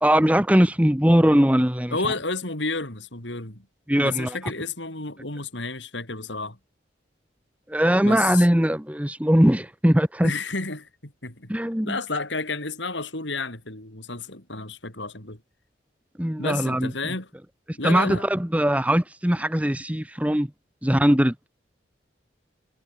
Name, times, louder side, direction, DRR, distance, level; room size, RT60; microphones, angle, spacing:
voice 1, 0.0-2.0 3.9-4.4 7.7-10.3 11.5-12.0 16.2-16.9 17.8-20.5 20.8-21.3, equal, 5° right, 1.1 m, -20 dB
voice 2, 1.9-3.7 4.0-6.6 8.0-8.5 10.2-11.5 11.8-15.4 16.4-17.3 17.8-18.2, left 3 dB, 80° left, 5.6 m, -31 dB
head